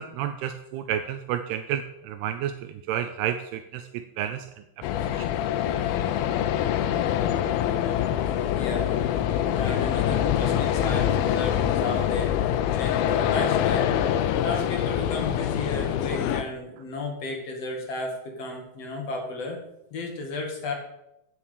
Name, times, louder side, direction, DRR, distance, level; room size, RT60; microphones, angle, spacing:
voice 1, 0.0-4.6 5.1-5.3, right 10 dB, 80° right, 8 dB, 2.5 m, -31 dB
sound 1, 4.8-16.4, left 10 dB, 80° left, 2.2 m, -25 dB
voice 2, 8.3-9.1 9.5-13.9 14.4-19.6 19.9-20.7, left 2 dB, 50° left, 1 dB, 2.1 m, -33 dB
8.9 x 7.0 x 8.2 m, 0.85 s
omnidirectional pair, 4.8 m